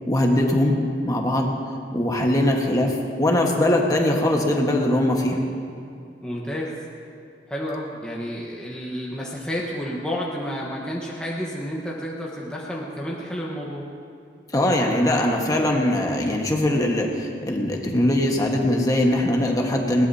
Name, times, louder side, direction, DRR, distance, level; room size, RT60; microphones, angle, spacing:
voice 1, 0.0-0.8 1.1-1.5 1.9-5.4 14.5-20.1, left 1 dB, 20° left, 0 dB, 1.4 m, -21 dB
voice 2, 6.2-6.7 7.5-13.8, equal, 5° left, -5 dB, 1.2 m, -30 dB
20.5 x 18.5 x 2.8 m, 2.4 s
head